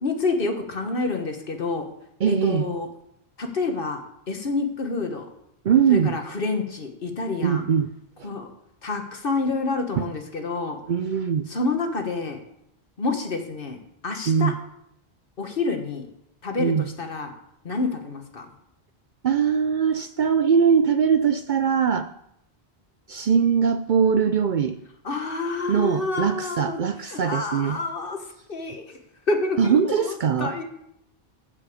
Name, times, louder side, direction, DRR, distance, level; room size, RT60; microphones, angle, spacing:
voice 1, 0.0-1.8 2.2-2.9 3.4-5.3 5.9-7.6 8.2-8.5 8.8-10.8 11.5-12.4 13.0-13.8 14.0-14.5 15.4-16.0 16.4-17.3 17.6-18.5 25.0-29.0 29.3-30.6, left 3 dB, 55° left, 5 dB, 1.5 m, -28 dB
voice 2, 2.2-2.7 5.6-6.2 7.4-7.9 8.2-8.3 10.0-10.1 10.9-11.5 14.3-14.5 16.6-16.9 19.2-22.1 23.1-24.8 25.7-27.8 29.6-30.5, right 7 dB, 55° right, 9 dB, 0.6 m, -21 dB
15.5 x 5.4 x 5.0 m, 0.76 s
omnidirectional pair, 1.1 m